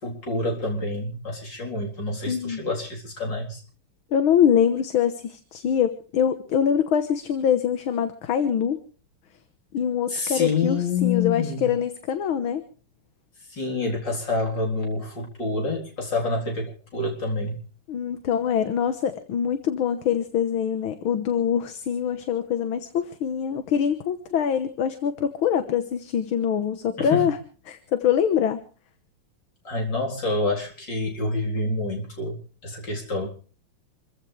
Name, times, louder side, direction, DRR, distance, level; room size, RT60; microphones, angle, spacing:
voice 1, 0.0-3.6 10.1-11.7 13.5-17.5 27.0-27.3 29.6-33.3, left 3 dB, 55° left, 0 dB, 4.7 m, -27 dB
voice 2, 2.3-2.6 4.1-8.8 9.7-12.6 17.9-27.4 27.7-28.6, left 8 dB, 70° left, 9 dB, 2.0 m, -24 dB
27.5 x 15.0 x 3.4 m, 0.38 s
omnidirectional pair, 2.4 m